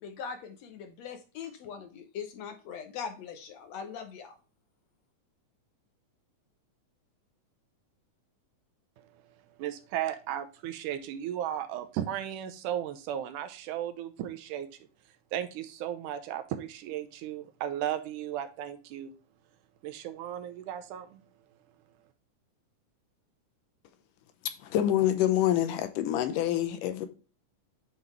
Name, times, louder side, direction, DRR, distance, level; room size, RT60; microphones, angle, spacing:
voice 1, 0.0-4.4, left 6 dB, 70° left, 1.7 m, -41 dB
voice 2, 9.6-14.7 15.3-19.1 19.8-21.2, right 11 dB, 85° right, 2.2 m, -35 dB
voice 3, 24.5-27.1, left 12 dB, 85° left, 2.4 m, -27 dB
8.9 x 3.9 x 3.1 m
omnidirectional pair, 3.7 m